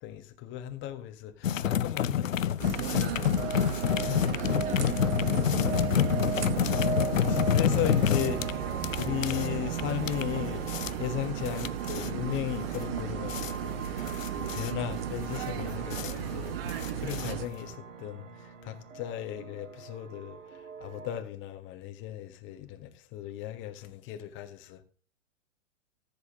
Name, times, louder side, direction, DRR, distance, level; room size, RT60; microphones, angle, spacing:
voice 1, 0.0-2.6 4.1-4.8 7.3-10.7 11.0-24.8, left 12 dB, 30° left, 1.5 m, -36 dB
sound 1, 1.4-17.7, left 9 dB, 85° left, 0.7 m, -29 dB
sound 2, 2.6-17.5, right 12 dB, 50° right, 1.0 m, -35 dB
sound 3, 3.4-21.2, right 5 dB, 75° right, 1.9 m, -39 dB
voice 2, 3.5-4.9 5.3-7.1 11.5-11.7, right 2 dB, 20° right, 1.9 m, -48 dB
14.0 x 7.7 x 3.6 m
hypercardioid pair, 115°, 38 cm